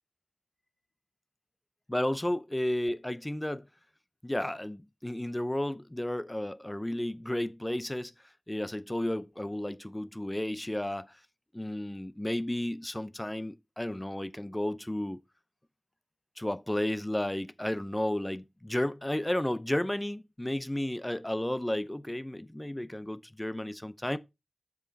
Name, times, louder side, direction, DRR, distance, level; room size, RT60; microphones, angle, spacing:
voice 1, 1.9-3.7 4.2-8.1 8.5-11.1 11.5-15.2 16.4-24.2, left 1 dB, 15° left, 0.6 m, -33 dB
7.2 x 6.2 x 4.0 m
wide cardioid pair, 50°, 0 cm